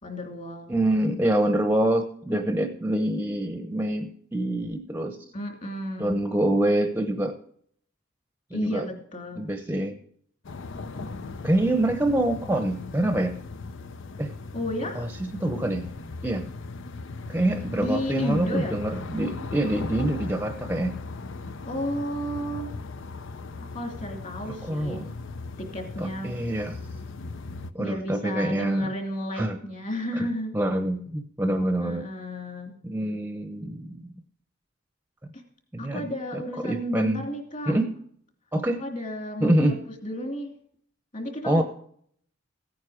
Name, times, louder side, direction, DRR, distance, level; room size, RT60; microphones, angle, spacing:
voice 1, 0.0-0.7 5.3-6.2 8.5-9.5 10.9-11.3 14.5-15.1 17.8-18.8 21.6-22.7 23.6-25.1 25.6-26.3 27.8-30.6 31.8-32.7 35.3-35.4 35.8-37.7 38.8-39.8 40.0-40.5 41.1-41.6, equal, 40° left, 4 dB, 2.8 m, -32 dB
voice 2, 0.7-5.2 6.0-7.3 8.5-8.8 9.3-10.0 11.4-13.4 14.2-14.3 14.9-15.9 16.2-16.5 17.3-21.0 24.4-25.1 26.0-26.8 27.7-28.9 29.3-29.6 30.1-30.3 30.5-32.0 32.8-34.1 35.7-37.2 37.7-37.9 38.5-38.8 39.4-39.8 41.4-41.6, right 1 dB, 10° right, 7 dB, 0.8 m, -26 dB
sound 1, 10.4-27.7, left 3 dB, 65° left, 0.7 m, -38 dB
16.0 x 9.3 x 5.0 m, 0.63 s
head